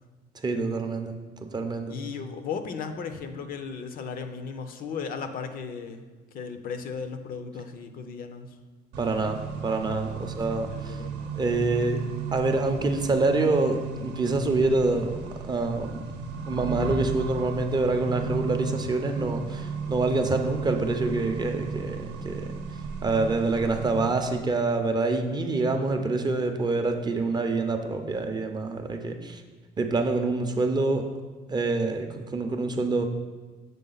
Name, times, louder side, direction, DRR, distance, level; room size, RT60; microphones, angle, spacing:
voice 1, 0.4-2.0 9.0-11.0 11.4-12.0 12.3-15.1 15.4-16.1 16.5-22.5 23.0-29.4 29.8-31.1 31.5-33.0, right 3 dB, 25° right, 5 dB, 0.5 m, -26 dB
voice 2, 1.9-6.0 6.3-8.6 10.2-11.4, left 5 dB, 60° left, 8 dB, 0.5 m, -36 dB
Accelerating revving vroom, 8.9-24.3, right 5 dB, 80° right, 0.7 m, -35 dB
6.8 x 3.5 x 3.9 m, 1.4 s
cardioid pair, 110°, 17 cm